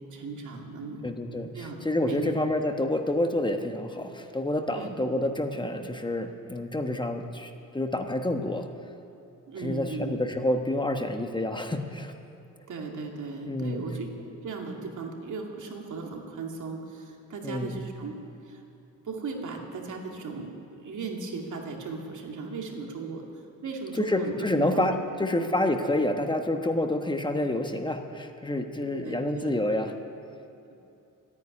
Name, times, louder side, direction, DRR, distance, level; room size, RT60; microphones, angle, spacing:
voice 1, 0.0-1.1 1.5-1.8 2.0-2.3 4.7-5.2 9.5-10.2 12.7-18.2 18.4-18.6 19.0-23.3 23.6-24.9 25.4-25.5 28.9-29.5, right 4 dB, 65° right, 1 dB, 2.5 m, -37 dB
voice 2, 1.0-8.7 9.6-12.1 13.5-13.8 17.4-17.8 24.0-24.9 25.2-29.9, left 1 dB, 15° left, 5 dB, 1.1 m, -28 dB
14.0 x 9.6 x 9.8 m, 2.8 s
cardioid pair, 90°, 33 cm